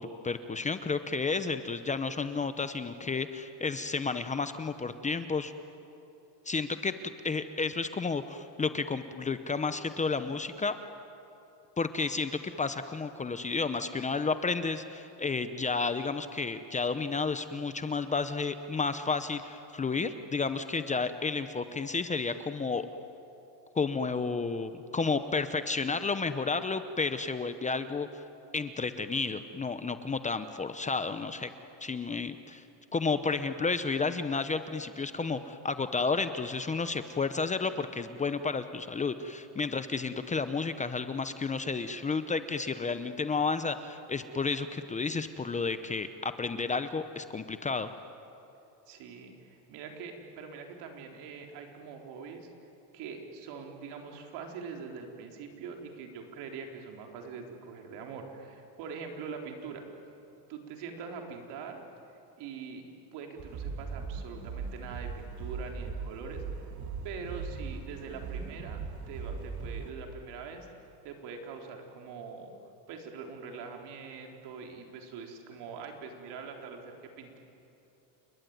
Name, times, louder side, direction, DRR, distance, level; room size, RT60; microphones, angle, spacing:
voice 1, 0.0-5.5 6.5-6.9 7.2-10.8 11.8-22.9 23.7-28.1 28.5-31.5 31.8-32.6 32.9-47.9, left 4 dB, 15° left, 10 dB, 0.8 m, -31 dB
voice 2, 48.9-52.5 52.9-59.8 60.5-61.8 62.4-66.4 67.0-68.8 69.1-70.7 71.0-72.5 72.9-77.4, right 5 dB, 70° right, 2 dB, 3.9 m, -43 dB
sound 1, 63.4-69.9, right 5 dB, 45° right, 1.8 m, -39 dB
29.5 x 20.5 x 9.4 m, 2.9 s
cardioid pair, 135°, 42 cm